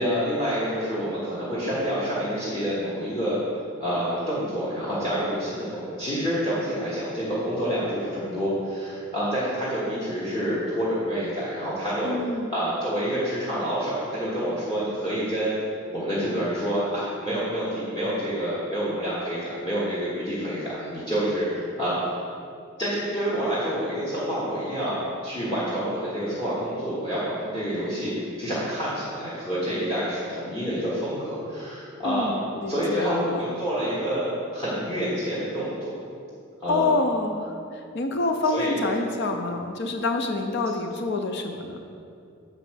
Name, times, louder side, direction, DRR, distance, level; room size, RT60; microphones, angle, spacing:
voice 1, 0.0-3.4 3.8-12.1 12.5-15.6 15.9-22.0 22.8-28.1 28.4-32.3 32.7-36.0 36.6-37.0 38.5-39.0, equal, 20° left, -9 dB, 1.3 m, -28 dB
voice 2, 12.0-12.5 32.0-33.5 36.7-41.8, left 2 dB, 55° left, 5 dB, 0.5 m, -27 dB
6.6 x 5.0 x 6.2 m, 2.4 s
head